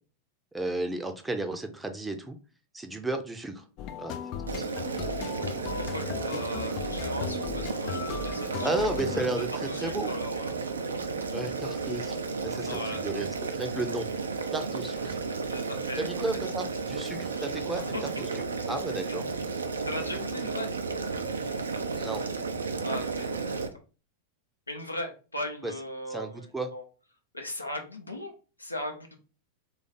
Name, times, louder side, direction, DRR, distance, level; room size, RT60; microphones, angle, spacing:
voice 1, 0.5-2.4 2.7-3.6 4.0-4.2 4.5-4.7 8.6-9.5 9.8-10.1 11.3-12.1 12.4-13.3 13.5-14.1 14.5-15.2 16.0-18.3 18.7-19.2 22.0-22.2 25.6-25.7 26.1-26.7, right 2 dB, 10° right, 6 dB, 0.6 m, -33 dB
sound 1, 3.8-9.4, left 9 dB, 40° left, 0.3 m, -37 dB
Boiling, 4.5-23.7, right 4 dB, 75° right, 0.4 m, -33 dB
voice 2, 5.4-8.9 9.1-10.6 12.7-13.3 14.9-15.0 15.5-16.4 17.3-18.0 18.7-18.8 19.1-19.2 19.8-20.7 22.8-23.7 24.7-26.8 27.3-28.3 28.6-29.2, left 1 dB, 85° left, 3 dB, 0.7 m, -38 dB
3.2 x 2.5 x 4.0 m, 0.34 s
figure-of-eight pair, 90°, 0 cm